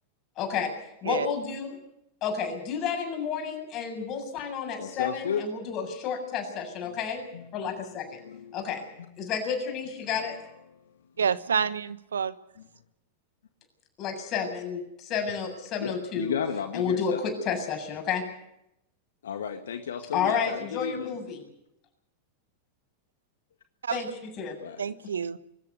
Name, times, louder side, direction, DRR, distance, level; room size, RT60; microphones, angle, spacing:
voice 1, 0.4-0.7 1.0-1.8 2.2-7.2 7.5-8.2 8.5-8.8 9.2-10.4 14.0-16.3 16.7-18.2 20.1-21.4 23.9-24.1 24.4-24.5, left 6 dB, 35° left, 4 dB, 7.4 m, -31 dB
voice 2, 4.8-5.5 6.8-7.0 7.3-8.7 10.2-10.3 10.7-10.8 15.8-17.2 19.2-21.1 24.6-24.8, left 7 dB, 65° left, 7 dB, 1.6 m, -34 dB
voice 3, 11.2-12.3 23.8-24.0 24.8-25.4, right 7 dB, 70° right, 17 dB, 1.0 m, -28 dB
25.0 x 14.0 x 9.5 m, 0.80 s
figure-of-eight pair, 90°, 0 cm